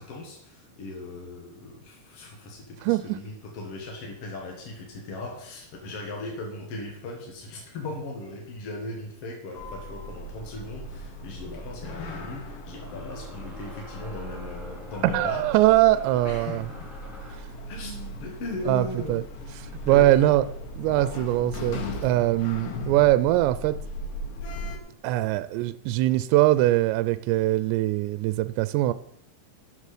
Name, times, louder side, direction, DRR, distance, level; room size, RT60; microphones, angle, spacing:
voice 1, 0.0-15.4 16.2-16.6 17.7-19.2 19.9-20.3, left 2 dB, 55° left, 1.7 m, -38 dB
voice 2, 2.8-3.2 15.1-16.6 18.7-19.2 19.9-20.4 20.8-23.8 25.0-28.9, right 16 dB, 85° right, 2.7 m, -22 dB
Sliding door, 9.6-24.8, left 1 dB, 75° left, 3.9 m, -38 dB
sound 1, 12.7-17.5, left 1 dB, ahead, 3.1 m, -46 dB
12.5 x 7.8 x 5.0 m
omnidirectional pair, 5.1 m